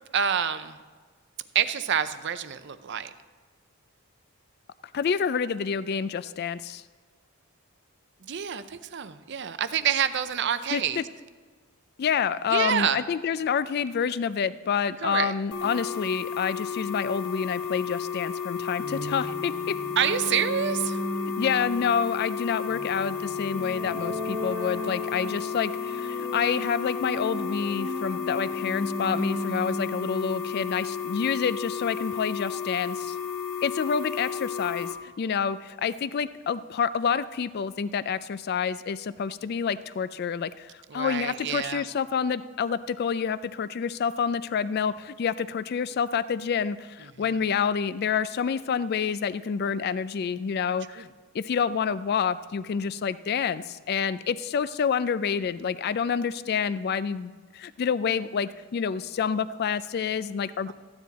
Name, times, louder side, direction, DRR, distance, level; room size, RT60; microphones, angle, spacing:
voice 1, 0.1-0.8 1.5-3.1 8.2-11.0 12.5-13.0 15.0-15.3 15.6-15.8 20.0-21.0 40.9-41.8 51.0-51.1, right 8 dB, 50° right, 12 dB, 0.6 m, -27 dB
voice 2, 4.9-6.8 10.7-11.0 12.0-19.8 21.4-33.2 33.6-51.1 51.3-60.7, left 6 dB, 45° left, 15 dB, 0.3 m, -28 dB
sound 1, 15.5-34.9, left 7 dB, 70° left, 1.8 m, -33 dB
sound 2, 18.8-31.3, right 1 dB, 25° right, 0.9 m, -37 dB
14.0 x 9.7 x 4.1 m, 1.4 s
head